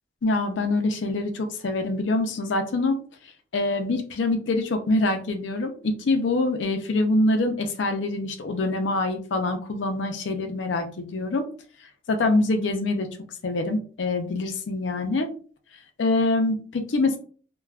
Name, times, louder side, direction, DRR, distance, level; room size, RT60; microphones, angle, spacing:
voice 1, 0.2-2.9 3.5-11.4 12.1-13.1 13.4-15.3 16.0-17.2, left 2 dB, 80° left, 6 dB, 0.5 m, -25 dB
2.3 x 2.2 x 3.3 m, 0.42 s
head